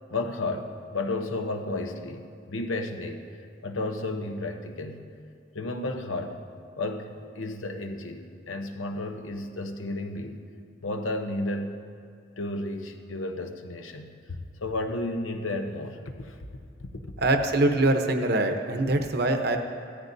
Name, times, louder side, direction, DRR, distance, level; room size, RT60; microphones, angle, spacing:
voice 1, 0.1-3.2 3.6-5.1 5.5-6.4 6.8-10.4 10.8-11.8 12.4-16.4 16.8-17.1, left 2 dB, 90° left, 5 dB, 0.9 m, -33 dB
voice 2, 17.2-19.6, right 2 dB, 55° right, 5 dB, 0.8 m, -23 dB
15.5 x 13.5 x 2.7 m, 2.3 s
head